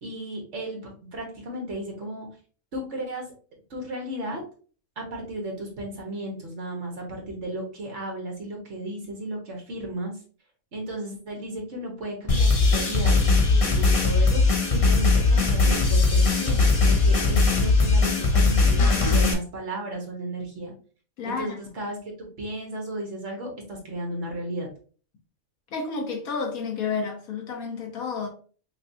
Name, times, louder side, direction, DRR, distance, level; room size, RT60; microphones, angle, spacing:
voice 1, 0.0-2.3 2.7-3.3 3.7-4.4 5.0-10.1 10.7-14.4 14.7-20.7 21.2-24.7, right 1 dB, 55° right, 1.5 m, -34 dB
sound 1, 12.3-19.3, left 3 dB, 40° left, 0.5 m, -20 dB
voice 2, 21.2-21.6 25.7-28.3, left 5 dB, 85° left, 1.5 m, -30 dB
5.8 x 2.4 x 2.7 m
omnidirectional pair, 1.4 m